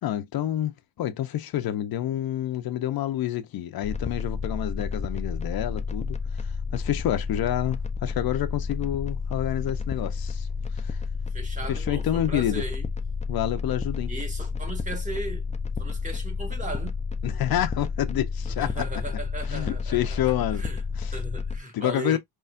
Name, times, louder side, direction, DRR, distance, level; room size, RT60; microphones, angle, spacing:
voice 1, 0.0-11.0 11.7-12.6 13.3-14.1 17.2-18.8 19.5-20.6 21.0-21.2 21.7-22.2, left 12 dB, 65° left, 0.7 m, -28 dB
sound 1, 3.8-21.6, left 4 dB, 15° left, 0.5 m, -31 dB
voice 2, 11.3-12.9 14.1-15.4 15.8-17.0 18.6-20.8 21.1-22.2, right 2 dB, 20° right, 1.5 m, -37 dB
5.6 x 3.1 x 2.5 m
cardioid pair, 135°, 39 cm